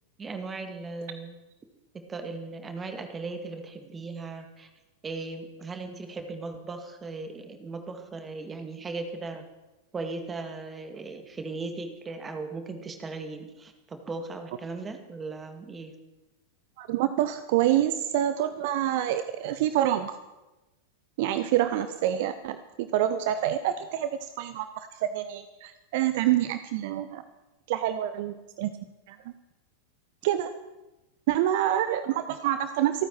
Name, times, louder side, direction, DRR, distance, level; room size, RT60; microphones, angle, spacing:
voice 1, 0.2-1.4 2.1-4.7 5.0-9.4 9.9-15.9, right 3 dB, 20° right, 6 dB, 2.0 m, -37 dB
voice 2, 16.8-20.2 21.2-27.2 27.7-28.7 29.1-29.3 30.2-30.5 31.3-33.1, right 12 dB, 50° right, 11 dB, 0.7 m, -27 dB
27.0 x 9.3 x 4.6 m, 1.1 s
figure-of-eight pair, 90°, 0 cm